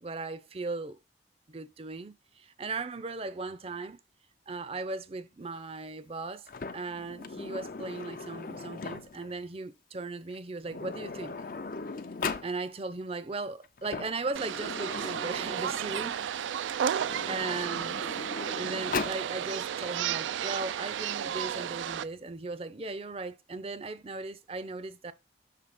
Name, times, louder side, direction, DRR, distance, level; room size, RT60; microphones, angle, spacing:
voice 1, 0.0-1.0 1.5-4.0 4.5-6.5 6.7-11.4 12.4-16.3 16.7-18.0 18.6-25.1, right 3 dB, 30° right, 0.5 m, -37 dB
Sliding door, 6.5-9.3 10.3-10.4 10.7-12.5 13.6-16.2 16.9-19.2, left 4 dB, 50° left, 0.5 m, -38 dB
sound 1, 14.3-22.0, right 9 dB, 90° right, 0.3 m, -33 dB
6.7 x 3.3 x 5.8 m
head